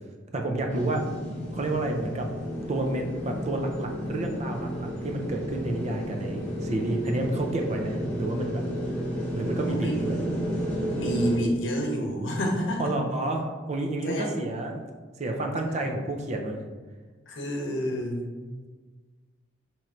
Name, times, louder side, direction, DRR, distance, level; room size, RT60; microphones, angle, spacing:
voice 1, 0.3-1.1 1.5-2.3 2.7-8.6 9.3-10.2 12.8-14.8 15.2-16.6 18.4-18.5, right 2 dB, 35° right, 3 dB, 0.4 m, -30 dB
sound 1, 0.7-11.4, equal, 5° left, 1.1 m, -32 dB
voice 2, 10.9-12.9 14.0-14.3 15.7-15.8 17.3-18.2, equal, 80° left, 0 dB, 0.8 m, -28 dB
3.0 x 2.5 x 4.3 m, 1.4 s
head